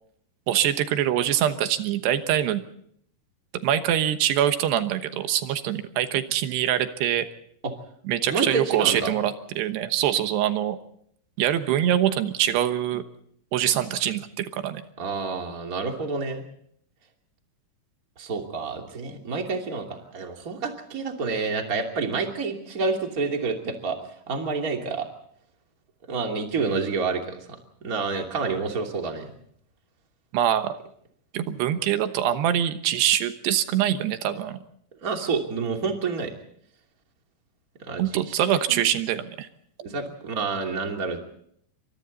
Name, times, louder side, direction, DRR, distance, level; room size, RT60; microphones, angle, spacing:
voice 1, 0.5-2.6 3.6-7.3 8.0-10.8 11.4-13.0 13.5-14.8 30.3-30.8 31.3-34.6 38.0-39.5, right 11 dB, 85° right, 9 dB, 3.3 m, -24 dB
voice 2, 8.3-9.1 15.0-16.4 18.2-24.0 24.3-25.1 26.1-27.4 27.8-29.3 35.0-36.3 37.9-38.4 38.7-39.0 39.8-41.2, right 4 dB, 25° right, 2 dB, 2.6 m, -28 dB
28.5 x 25.0 x 4.1 m, 0.67 s
omnidirectional pair, 4.7 m